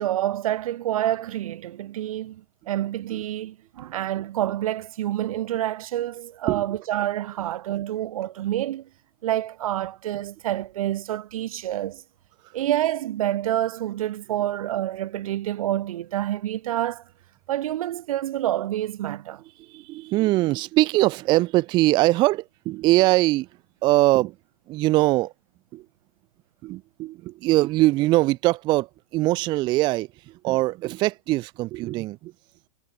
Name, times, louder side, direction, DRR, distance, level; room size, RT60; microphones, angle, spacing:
voice 1, 0.0-8.9 9.2-12.0 12.5-17.0 17.5-19.4, right 13 dB, 75° right, 1.1 m, -28 dB
voice 2, 19.6-23.5 23.8-24.3 24.7-25.3 25.7-25.8 26.6-32.3, right 18 dB, 25° right, 0.4 m, -22 dB
hypercardioid pair, 140°, 18 cm